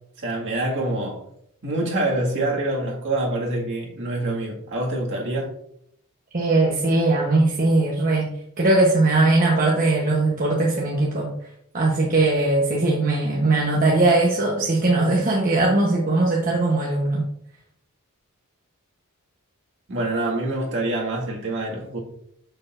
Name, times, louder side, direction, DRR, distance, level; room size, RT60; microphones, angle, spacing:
voice 1, 0.2-1.2 1.6-5.5 19.9-22.0, right 2 dB, 60° right, 1.9 m, -26 dB
voice 2, 6.3-11.3 11.7-17.3, right 2 dB, 40° right, 1.0 m, -20 dB
6.7 x 6.5 x 2.5 m
head